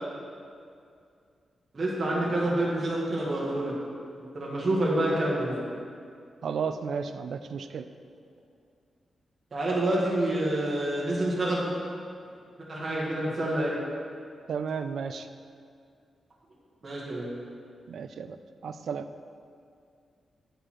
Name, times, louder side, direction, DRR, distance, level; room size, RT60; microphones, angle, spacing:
voice 1, 1.7-3.7 4.3-5.6 9.5-11.6 12.7-13.8 16.8-17.3, right 1 dB, 35° right, -6 dB, 1.5 m, -27 dB
voice 2, 6.4-7.9 14.5-15.3 17.9-18.4 18.6-19.1, right 6 dB, 65° right, 10 dB, 0.3 m, -33 dB
8.7 x 5.4 x 4.3 m, 2.3 s
wide cardioid pair, 160°, 0 cm